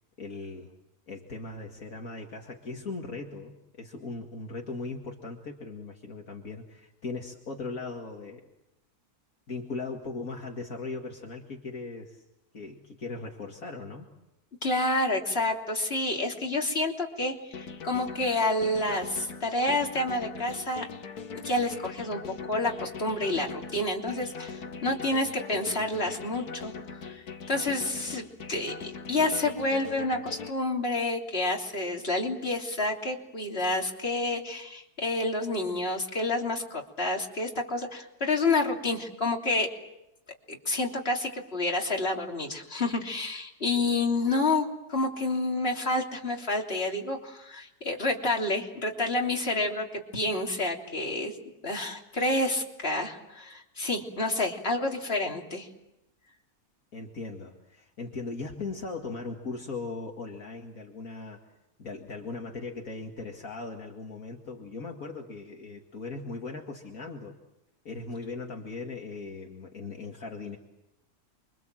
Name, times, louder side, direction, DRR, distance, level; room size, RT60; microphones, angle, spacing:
voice 1, 0.2-0.7 1.1-8.4 9.5-12.2 12.5-14.1 56.9-61.4 61.8-67.3 67.8-70.6, left 3 dB, 65° left, 1 dB, 2.6 m, -38 dB
voice 2, 14.6-20.8 21.3-22.2 22.5-26.7 27.1-39.7 40.5-51.4 51.6-55.7, left 2 dB, 40° left, 0 dB, 3.6 m, -29 dB
sound 1, 17.5-30.5, left 5 dB, 85° left, 1.9 m, -41 dB
29.0 x 24.5 x 7.6 m, 0.90 s
omnidirectional pair, 1.6 m